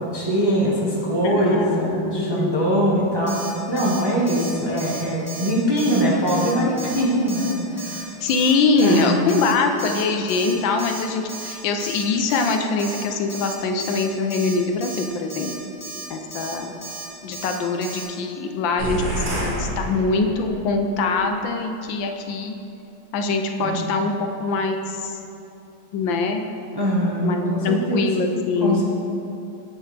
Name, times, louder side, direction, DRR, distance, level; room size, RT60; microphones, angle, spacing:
voice 1, 0.0-8.1 8.8-9.3 23.6-23.8 26.7-28.1 28.6-28.8, equal, 20° right, -6 dB, 0.8 m, -22 dB
voice 2, 1.2-2.6 8.2-15.5 16.1-16.7 17.2-22.5 23.1-25.2 25.9-26.4 27.2-28.8, left 3 dB, 80° left, 5 dB, 1.4 m, -23 dB
Alarm, 3.3-3.5 3.8-4.0 4.3-4.5 4.8-5.0 5.3-5.5 5.8-6.0 6.3-6.5 6.8-7.0 7.3-7.5 7.8-8.0 8.3-8.5 8.8-9.0 9.3-9.5 9.8-10.0 10.3-10.5 10.8-11.0 11.3-11.5 11.8-12.0 12.3-12.5 12.8-13.0 13.3-13.5 13.8-14.0 14.3-14.5 14.8-15.0 15.3-15.5 15.8-16.0 16.3-16.5 16.8-17.1 17.3-17.6 17.8-18.0, right 2 dB, 10° left, 1.4 m, -35 dB
sound 1, 18.8-20.6, right 1 dB, 65° right, 2.0 m, -27 dB
9.8 x 7.5 x 3.3 m, 2.7 s
omnidirectional pair, 2.1 m